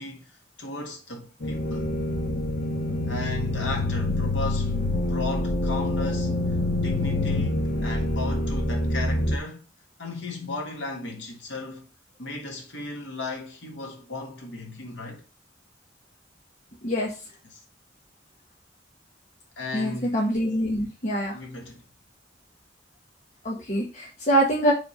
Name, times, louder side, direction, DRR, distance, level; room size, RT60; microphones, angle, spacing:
voice 1, 0.0-1.9 3.1-4.8 5.1-6.6 6.8-9.6 10.0-11.9 12.2-15.2 17.4-17.6 19.6-20.1 21.3-21.8, left 2 dB, 80° left, 1.6 m, -35 dB
sound 1, 1.4-9.4, left 1 dB, 60° left, 1.1 m, -26 dB
voice 2, 16.8-17.1 19.7-21.4 23.4-24.7, right 1 dB, 40° left, 1.2 m, -24 dB
4.8 x 3.6 x 5.6 m
head